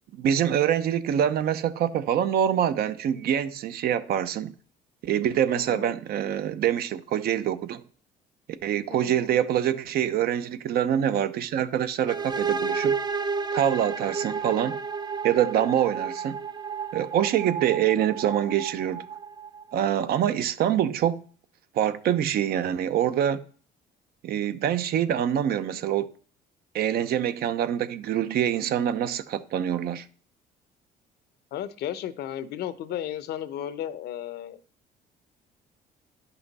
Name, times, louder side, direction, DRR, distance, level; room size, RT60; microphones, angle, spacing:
voice 1, 0.1-4.5 5.0-7.8 8.6-13.0 13.5-14.8 15.2-16.4 16.9-19.0 19.7-21.2 21.7-23.4 24.2-26.1 26.7-30.1, right 10 dB, 65° right, 0.7 m, -25 dB
voice 2, 5.5-5.9 8.9-9.3 31.5-34.6, left 11 dB, 75° left, 0.8 m, -34 dB
sound 1, 12.1-19.7, right 5 dB, 25° right, 0.5 m, -31 dB
10.5 x 5.7 x 4.1 m
cardioid pair, 110°, 17 cm